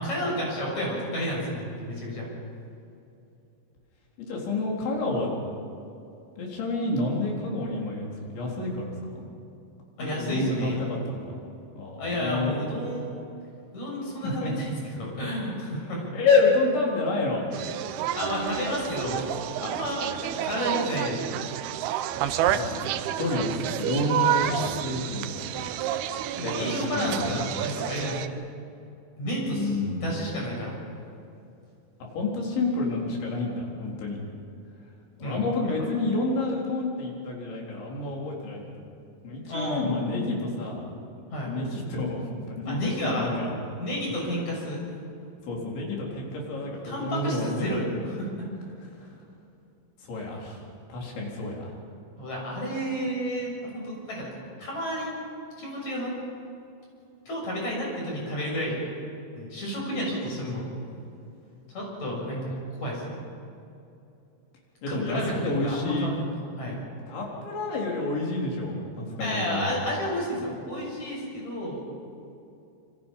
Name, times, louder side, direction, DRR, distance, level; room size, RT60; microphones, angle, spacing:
voice 1, 0.0-2.3 10.0-10.8 12.0-13.2 13.7-16.0 18.1-19.3 19.6-21.2 26.3-28.3 29.2-30.8 35.2-35.5 39.5-39.9 41.3-41.5 42.7-43.4 43.8-44.8 46.8-48.5 49.0-49.1 52.2-54.3 54.6-55.1 55.6-56.1 57.3-58.8 59.3-60.7 61.7-63.2 64.9-66.3 66.6-66.8 69.2-71.8, equal, 40° left, -2 dB, 7.9 m, -31 dB
voice 2, 4.2-5.4 6.4-9.3 10.0-11.3 11.8-12.6 13.5-13.6 14.2-14.5 16.1-17.5 22.2-22.9 23.2-25.6 26.4-27.3 29.5-30.1 32.0-34.2 35.2-38.9 39.2-40.9 41.4-43.5 45.4-47.7 50.0-50.6 50.9-51.7 64.8-66.1 67.1-69.7, left 3 dB, 75° left, -2 dB, 6.3 m, -29 dB
sound 1, 17.5-28.3, right 11 dB, 75° right, 2.4 m, -29 dB
26.5 x 25.5 x 5.6 m, 2.7 s
omnidirectional pair, 5.3 m